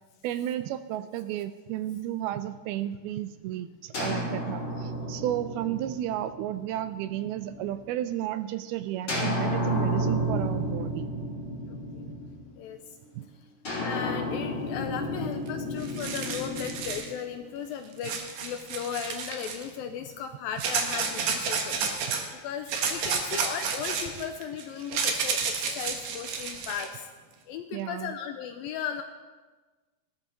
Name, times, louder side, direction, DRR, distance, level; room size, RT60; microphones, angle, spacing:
voice 1, 0.2-11.1 13.2-13.3 27.7-28.2, right 12 dB, 80° right, 11 dB, 2.3 m, -33 dB
sound 1, 3.9-7.7 9.1-12.6 13.6-17.8, equal, 30° left, 4.0 m, -32 dB
voice 2, 11.7-12.1 12.6-12.8 13.8-27.1 27.5-29.0, left 8 dB, 80° left, 7 dB, 2.2 m, -36 dB
sound 2, 15.5-15.6 15.8-17.1 18.0-19.7 20.6-22.2 22.7-26.9, right 6 dB, 65° right, 2.8 m, -31 dB
18.0 x 11.5 x 4.0 m, 1.3 s
omnidirectional pair, 4.6 m